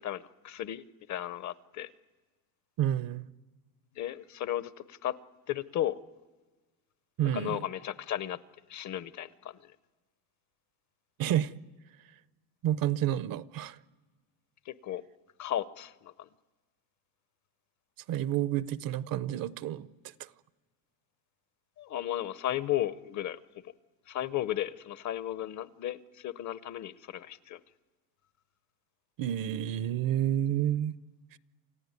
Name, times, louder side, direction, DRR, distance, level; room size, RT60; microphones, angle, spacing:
voice 1, 0.0-1.9 4.0-5.2 5.5-6.0 7.3-8.4 8.7-9.7 14.7-15.0 15.4-16.3 21.8-23.7 24.1-27.6, left 12 dB, 40° left, 0.7 m, -35 dB
voice 2, 2.8-3.3 7.2-7.6 11.2-11.5 12.6-13.8 18.1-19.9 20.2-20.3 29.2-31.0 31.3-31.4, right 11 dB, 55° right, 0.7 m, -29 dB
28.5 x 15.5 x 9.5 m
cardioid pair, 145°, 43 cm